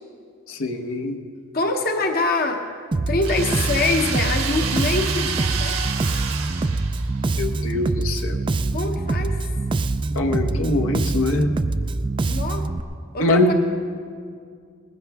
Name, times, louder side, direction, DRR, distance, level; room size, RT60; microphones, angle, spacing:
voice 1, 0.5-1.2 7.4-8.4 10.1-11.5 13.2-13.5, left 2 dB, 75° left, 4 dB, 1.1 m, -22 dB
voice 2, 1.5-2.7 3.1-5.8 8.7-9.4 12.2-12.7 13.1-13.5, left 3 dB, 45° left, 4 dB, 0.9 m, -24 dB
Bass guitar, 2.9-12.8, right 2 dB, 25° right, 0.3 m, -24 dB
sound 1, 3.2-7.3, right 7 dB, 80° right, 1.4 m, -29 dB
20.0 x 15.0 x 3.5 m, 2.2 s
head